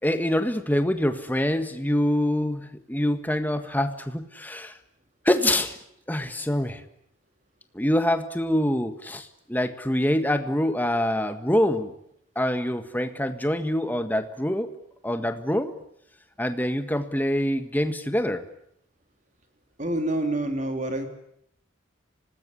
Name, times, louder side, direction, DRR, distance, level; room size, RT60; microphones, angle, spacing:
voice 1, 0.0-4.7 5.2-5.8 6.1-6.8 7.7-11.9 12.3-14.7 15.0-15.7 16.4-18.4, left 1 dB, 10° left, 8 dB, 1.7 m, -25 dB
voice 2, 19.8-21.1, right 1 dB, 35° right, 5 dB, 3.3 m, -27 dB
25.5 x 19.5 x 9.9 m, 0.74 s
head